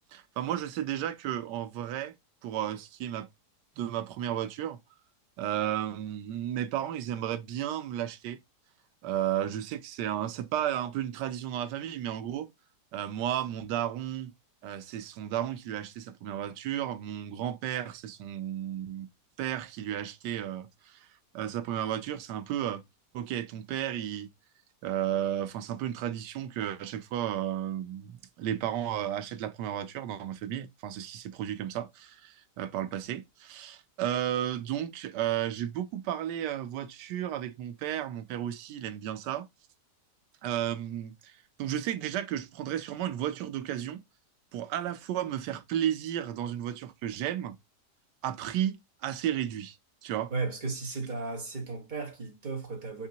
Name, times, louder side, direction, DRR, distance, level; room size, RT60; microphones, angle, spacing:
voice 1, 0.1-2.1 2.4-3.3 3.8-4.8 5.4-8.4 9.0-12.5 12.9-14.3 14.6-19.1 19.4-21.1 21.3-22.8 23.1-24.3 24.8-39.4 40.4-44.0 44.5-47.6 48.2-49.8 50.0-50.3, right 11 dB, 85° right, 1.2 m, -33 dB
voice 2, 50.3-53.1, right 3 dB, 35° right, 1.0 m, -35 dB
4.1 x 3.7 x 2.7 m
omnidirectional pair, 1.8 m